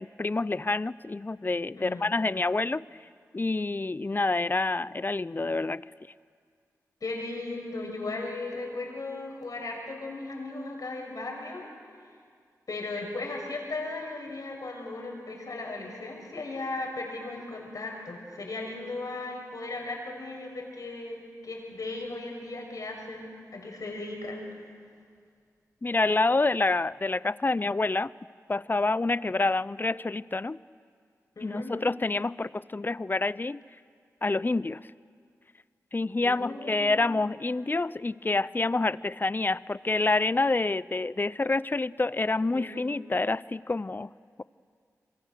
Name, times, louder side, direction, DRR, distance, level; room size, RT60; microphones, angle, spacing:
voice 1, 0.0-2.8 3.3-5.8 25.8-28.1 28.5-30.6 31.4-33.6 34.2-34.8 35.9-44.1, left 3 dB, 30° left, 19 dB, 0.5 m, -27 dB
voice 2, 1.8-2.1 7.0-11.7 12.7-24.5 31.4-31.7 36.2-37.0 42.5-42.9, left 2 dB, 65° left, 1 dB, 6.1 m, -37 dB
26.5 x 22.5 x 6.7 m, 2.1 s
cardioid pair, 45°, 6 cm